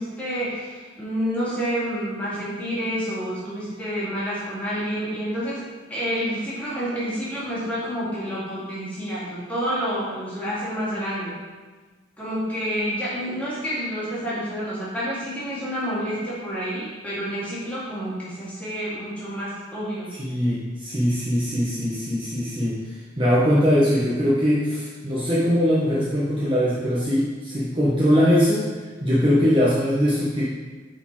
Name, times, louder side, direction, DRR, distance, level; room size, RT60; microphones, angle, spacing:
voice 1, 0.0-11.3 12.2-20.1, equal, 5° left, -10 dB, 2.4 m, -29 dB
voice 2, 20.2-30.4, equal, 25° right, -8 dB, 1.0 m, -21 dB
7.6 x 4.4 x 4.6 m, 1.3 s
head